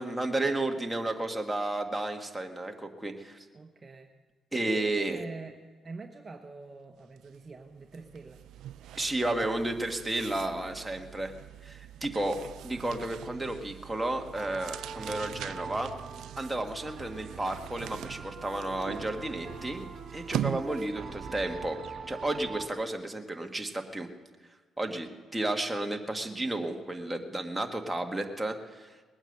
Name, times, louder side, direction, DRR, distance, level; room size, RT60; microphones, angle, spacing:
voice 1, 0.0-3.4 4.5-5.2 8.9-11.3 11.6-15.9 16.4-19.8 20.1-21.8 22.1-24.1 24.8-28.9, right 2 dB, 10° right, 3 dB, 1.6 m, -32 dB
voice 2, 3.5-4.1 4.6-5.5 5.8-8.4 20.4-20.7, right 3 dB, 30° right, 4 dB, 1.1 m, -44 dB
sound 1, 7.2-7.4 7.7-21.1, right 12 dB, 80° right, 0.4 m, -42 dB
sound 2, 14.3-22.7, right 5 dB, 55° right, 2.2 m, -43 dB
19.5 x 8.9 x 8.0 m, 1.4 s
cardioid pair, 90°, 0 cm